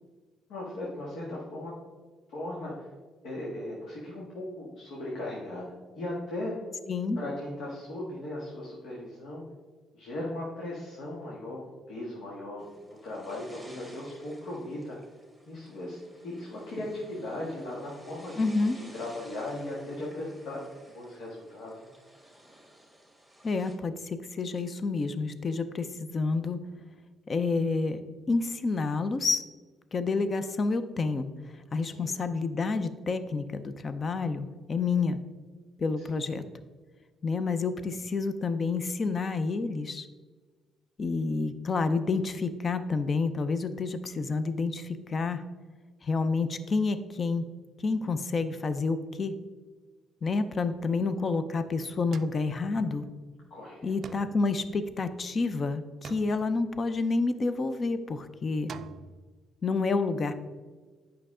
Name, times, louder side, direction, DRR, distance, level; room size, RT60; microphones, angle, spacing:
voice 1, 0.5-1.7 2.3-2.9 3.2-6.5 7.2-9.4 9.9-15.0 15.5-18.3 18.7-20.6 20.9-21.9 31.9-32.1 36.0-36.2 53.5-53.9, left 1 dB, 80° left, -4 dB, 1.7 m, -38 dB
voice 2, 6.9-7.2 18.4-18.8 23.4-26.6 27.3-28.0 28.3-29.4 29.9-31.3 31.7-35.2 35.8-36.4 37.2-40.1 41.0-45.4 46.0-47.4 47.8-49.4 50.2-53.1 53.8-58.7 59.6-60.3, left 4 dB, 35° left, 11 dB, 0.5 m, -29 dB
sound 1, 12.6-23.7, right 1 dB, 5° left, 1.7 m, -54 dB
sound 2, 52.1-53.3 54.0-55.5 56.0-57.4 58.7-59.2, right 6 dB, 50° right, 0.3 m, -47 dB
8.9 x 5.7 x 3.7 m, 1.4 s
cardioid pair, 120°, 0 cm